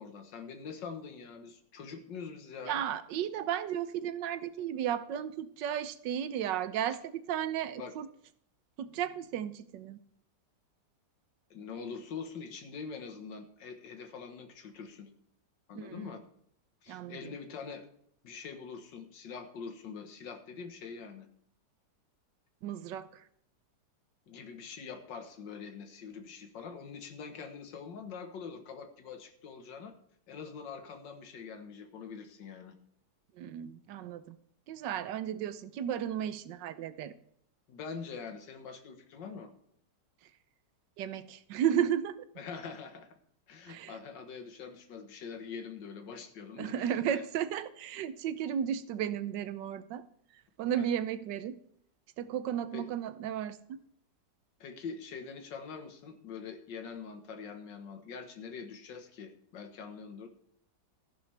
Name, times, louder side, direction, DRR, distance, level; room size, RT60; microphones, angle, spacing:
voice 1, 0.0-2.8 7.8-7.9 11.5-15.1 15.7-16.2 16.8-17.9 18.2-21.3 24.3-29.9 30.3-32.8 37.7-39.5 42.4-43.2 43.5-47.2 50.7-50.9 52.7-52.9 54.6-60.3, left 5 dB, 85° left, 7 dB, 1.9 m, -44 dB
voice 2, 2.7-8.1 8.8-10.0 15.7-16.0 16.9-17.2 22.6-23.2 33.4-34.4 34.7-37.1 41.0-42.2 43.7-44.0 46.6-50.0 50.6-51.6 52.2-53.8, right 9 dB, 80° right, 14 dB, 1.3 m, -34 dB
14.5 x 11.0 x 3.4 m, 0.67 s
omnidirectional pair, 1.9 m